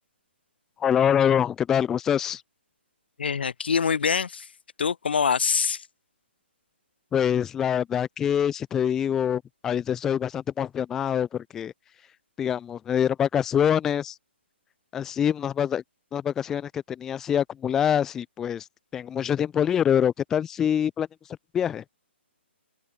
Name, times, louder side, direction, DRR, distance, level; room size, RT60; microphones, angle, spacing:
voice 1, 0.8-2.4 7.1-11.7 12.4-14.2 14.9-15.8 16.1-18.7 18.9-21.1 21.5-21.8, left 9 dB, 5° left, 0.9 m, -25 dB
voice 2, 3.2-4.5 4.8-5.9, left 6 dB, 60° left, 2.3 m, -24 dB
open air
hypercardioid pair, 175°, 6 cm